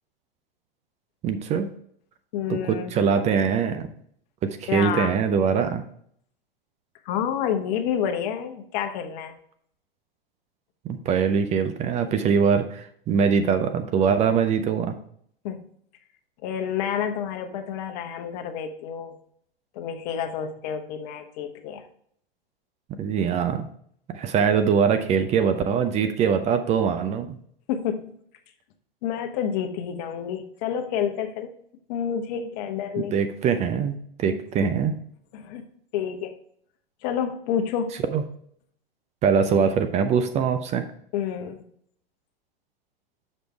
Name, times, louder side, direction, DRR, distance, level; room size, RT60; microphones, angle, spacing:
voice 1, 1.2-1.7 2.5-3.9 4.4-5.8 10.8-14.9 23.0-23.7 24.1-27.3 33.1-34.9 38.1-38.2 39.2-40.9, right 6 dB, 25° right, 9 dB, 0.5 m, -23 dB
voice 2, 2.3-2.9 4.7-5.2 7.0-9.3 15.4-15.6 16.4-19.2 19.7-21.8 27.7-28.1 29.0-31.5 31.9-33.1 34.3-34.7 35.3-35.7 35.9-36.4 37.0-38.0 41.1-41.6, left 8 dB, 45° left, 6 dB, 1.1 m, -29 dB
6.4 x 5.1 x 4.6 m, 0.64 s
hypercardioid pair, 110°, 29 cm